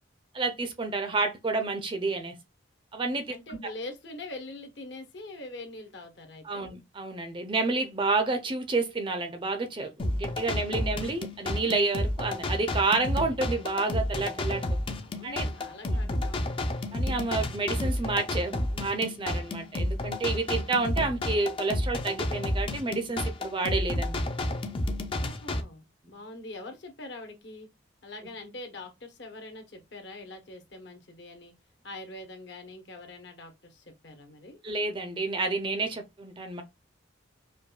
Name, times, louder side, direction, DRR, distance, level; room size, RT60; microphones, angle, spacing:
voice 1, 0.3-2.3 2.9-3.6 6.4-14.8 15.2-15.5 15.9-16.1 16.9-24.6 34.6-36.6, right 3 dB, 25° right, 0.5 m, -30 dB
voice 2, 3.3-6.7 15.0-16.7 25.1-27.7 28.0-31.5 31.8-34.6, left 2 dB, 65° left, 1.0 m, -43 dB
sound 1, 10.0-25.6, left 1 dB, 25° left, 0.4 m, -31 dB
5.0 x 2.2 x 2.3 m
head